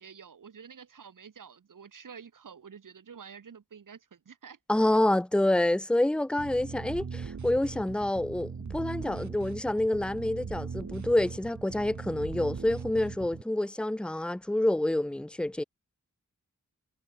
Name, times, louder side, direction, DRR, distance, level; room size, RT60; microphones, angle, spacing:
voice 1, 0.0-4.6, right 6 dB, 80° right, 1.8 m, -49 dB
voice 2, 4.7-15.6, left 1 dB, 5° left, 0.8 m, -27 dB
sound 1, 6.4-13.4, right 5 dB, 65° right, 2.3 m, -40 dB
wide cardioid pair, 100°, 31 cm